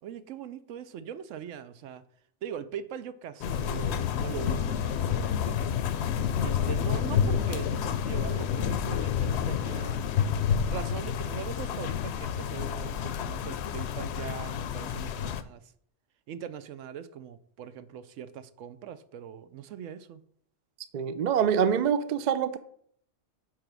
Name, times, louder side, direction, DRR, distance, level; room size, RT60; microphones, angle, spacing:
voice 1, 0.0-2.0 2.4-5.6 6.4-10.0 10.7-15.7 16.3-20.2, right 9 dB, 80° right, 1.0 m, -41 dB
sound 1, 3.4-15.4, left 8 dB, 65° left, 0.8 m, -29 dB
voice 2, 20.9-22.6, right 8 dB, 60° right, 0.4 m, -25 dB
8.6 x 3.2 x 6.1 m
omnidirectional pair, 1.3 m